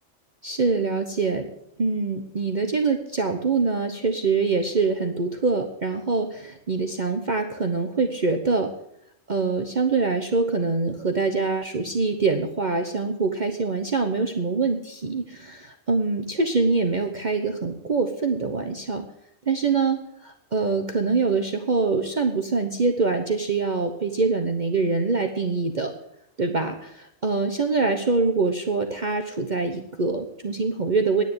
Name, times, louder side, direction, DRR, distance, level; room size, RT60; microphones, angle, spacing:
voice 1, 0.4-1.5 1.8-8.7 9.3-19.0 19.5-25.9 26.4-31.2, right 4 dB, 40° right, 5 dB, 1.1 m, -24 dB
10.0 x 9.7 x 9.6 m, 0.77 s
omnidirectional pair, 1.3 m